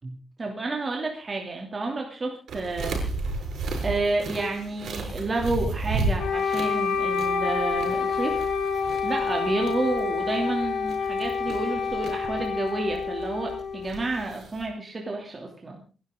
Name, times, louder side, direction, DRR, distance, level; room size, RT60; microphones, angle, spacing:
voice 1, 0.0-3.0 3.8-8.5 9.0-15.8, right 2 dB, 25° right, 1 dB, 2.9 m, -30 dB
sound 1, 2.5-14.7, right 3 dB, 85° right, 6.7 m, -34 dB
Wind instrument woodwind instrument, 6.2-14.2, left 5 dB, 75° left, 3.7 m, -28 dB
28.5 x 12.0 x 3.8 m, 0.35 s
wide cardioid pair, 180°, 0 cm